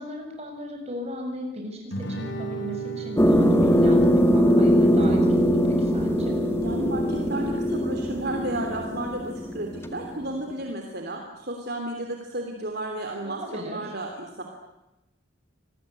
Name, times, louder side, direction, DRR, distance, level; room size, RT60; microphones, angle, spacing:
voice 1, 0.0-6.3 13.1-13.9, equal, 30° right, 2 dB, 7.1 m, -37 dB
Guitar, 1.9-7.0, right 3 dB, 60° left, 4.1 m, -38 dB
sound 1, 3.2-10.4, equal, 10° left, 1.7 m, -21 dB
voice 2, 6.2-14.4, right 1 dB, 50° right, 2 dB, 3.1 m, -33 dB
27.5 x 20.0 x 9.9 m, 0.96 s
head